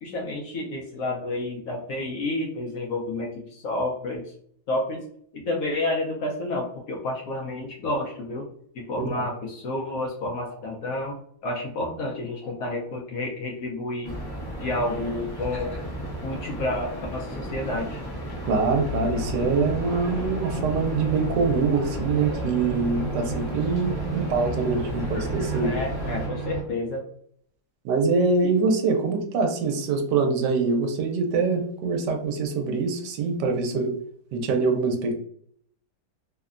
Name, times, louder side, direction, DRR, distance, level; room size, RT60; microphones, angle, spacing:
voice 1, 0.0-4.3 4.7-5.0 5.3-8.5 8.7-11.1 11.4-14.2 14.6-15.8 16.2-18.0 25.6-27.0 28.4-28.5, left 2 dB, 70° left, -1 dB, 0.9 m, -30 dB
sound 1, 14.0-26.3, equal, 35° left, 0.3 m, -34 dB
voice 2, 18.5-25.7 27.8-33.9 34.3-35.1, right 4 dB, 80° right, 4 dB, 1.2 m, -24 dB
sound 2, 18.8-26.6, right 3 dB, 40° right, 1.3 m, -33 dB
3.1 x 2.1 x 2.4 m, 0.62 s
omnidirectional pair, 1.9 m